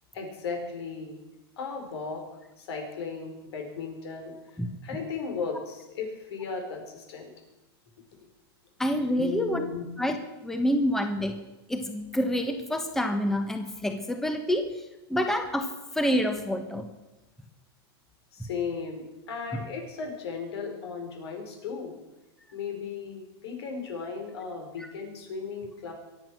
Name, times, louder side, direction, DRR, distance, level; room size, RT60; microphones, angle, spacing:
voice 1, 0.1-1.2 1.6-2.2 2.6-4.3 4.8-7.3 9.2-9.8 18.3-21.9 22.5-25.9, left 5 dB, 75° left, 3 dB, 4.9 m, -36 dB
voice 2, 8.8-9.7 10.0-10.2 10.4-11.3 11.7-14.7 15.1-15.7 15.9-16.9 24.8-24.9, equal, 5° left, 6 dB, 1.2 m, -27 dB
23.0 x 8.6 x 6.2 m, 1.0 s
supercardioid pair, 145°, 14 cm